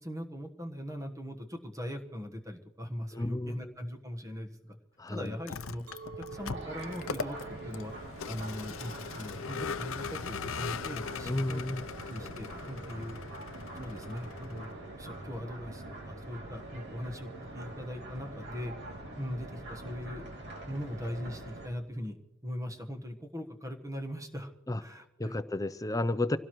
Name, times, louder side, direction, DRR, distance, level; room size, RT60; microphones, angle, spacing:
voice 1, 0.0-4.8 5.1-5.8 6.2-7.9 8.3-11.6 12.1-13.2 13.7-14.7 15.0-18.7 19.2-20.2 20.7-22.2 22.4-24.5 24.8-25.4, equal, 15° right, 4 dB, 1.2 m, -40 dB
voice 2, 3.1-3.7 5.0-5.3 11.2-11.9 24.7-24.8 25.2-26.4, left 1 dB, 15° left, 12 dB, 0.5 m, -32 dB
Vehicle, 5.3-14.7, left 5 dB, 65° left, 0.6 m, -40 dB
Chink clink, 5.9-11.0, right 6 dB, 85° right, 0.9 m, -50 dB
sound 1, 6.3-21.7, right 1 dB, 55° right, 2.7 m, -44 dB
26.0 x 17.0 x 3.1 m, 0.99 s
head